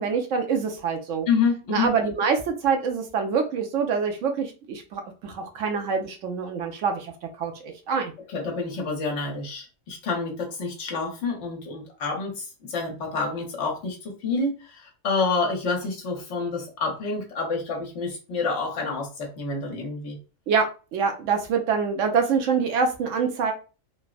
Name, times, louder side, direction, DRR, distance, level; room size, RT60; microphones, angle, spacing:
voice 1, 0.0-1.3 1.7-7.1 7.4-8.1 20.5-20.7 20.9-23.5, right 5 dB, 70° right, 4 dB, 0.9 m, -25 dB
voice 2, 1.3-1.9 8.3-20.2, left 4 dB, 60° left, 0 dB, 1.1 m, -28 dB
3.3 x 2.0 x 2.4 m, 0.33 s
omnidirectional pair, 1.4 m